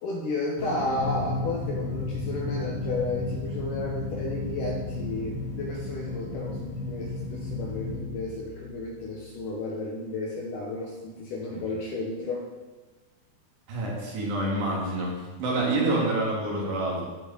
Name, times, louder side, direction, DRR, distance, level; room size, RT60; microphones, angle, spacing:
voice 1, 0.0-12.5, left 2 dB, 70° left, -1 dB, 2.1 m, -33 dB
sound 1, 0.6-9.3, left 3 dB, 45° left, 2.6 m, -33 dB
voice 2, 13.7-17.0, right 2 dB, 90° right, -3 dB, 4.3 m, -27 dB
15.0 x 5.7 x 4.0 m, 1.2 s
omnidirectional pair, 4.8 m